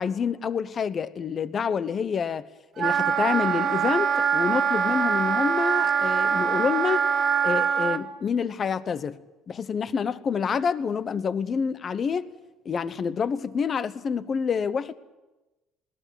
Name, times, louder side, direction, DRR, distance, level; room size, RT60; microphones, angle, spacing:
voice 1, 0.0-2.5 2.8-7.0 7.4-9.2 9.5-12.3 12.6-15.0, left 6 dB, 30° left, 1.0 m, -27 dB
Wind instrument woodwind instrument, 2.8-8.0, right 7 dB, 40° right, 1.4 m, -23 dB
21.0 x 18.5 x 9.2 m
cardioid pair, 145°, 0 cm